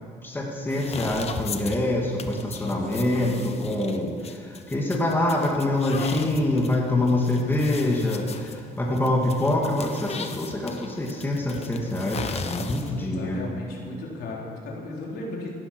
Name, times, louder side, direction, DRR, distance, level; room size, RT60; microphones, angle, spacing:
voice 1, 0.2-13.4, left 1 dB, 10° left, -2 dB, 2.5 m, -25 dB
sound 1, 0.7-13.1, left 5 dB, 40° left, 1.1 m, -38 dB
voice 2, 2.6-3.0 12.5-15.5, left 2 dB, 70° left, -2 dB, 3.9 m, -36 dB
16.5 x 12.0 x 6.3 m, 2.2 s
cardioid pair, 110°, 17 cm